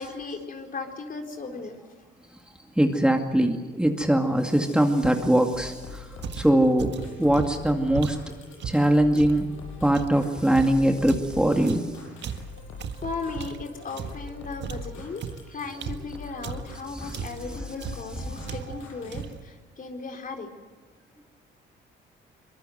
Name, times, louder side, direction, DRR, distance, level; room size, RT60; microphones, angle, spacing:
voice 1, 0.0-1.8 13.0-20.5, left 4 dB, 45° left, 4 dB, 4.1 m, -36 dB
voice 2, 2.8-6.1 6.4-8.2 8.6-9.4 9.8-11.8 17.0-17.1 18.3-18.4, right 1 dB, 5° right, 3 dB, 2.3 m, -22 dB
sound 1, 5.5-19.2, left 4 dB, 85° left, 8.0 m, -43 dB
sound 2, 6.2-9.4 9.9-14.3 14.6-16.8 17.1-17.5 17.8-18.1 18.5-18.9 19.1-19.5, right 8 dB, 60° right, 1.7 m, -36 dB
24.0 x 21.5 x 8.0 m, 1.4 s
cardioid pair, 90°, 20 cm